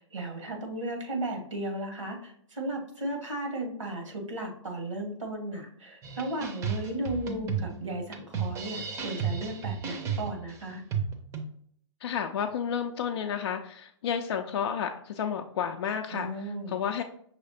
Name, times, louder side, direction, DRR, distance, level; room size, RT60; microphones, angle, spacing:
voice 1, 0.1-10.8 16.1-16.7, right 1 dB, 80° right, 3 dB, 1.3 m, -35 dB
sound 1, 6.0-11.4, right 6 dB, 20° right, 0.6 m, -33 dB
voice 2, 12.0-17.0, left 7 dB, 55° left, 4 dB, 0.4 m, -31 dB
5.7 x 3.2 x 2.6 m, 0.63 s
figure-of-eight pair, 115°, 16 cm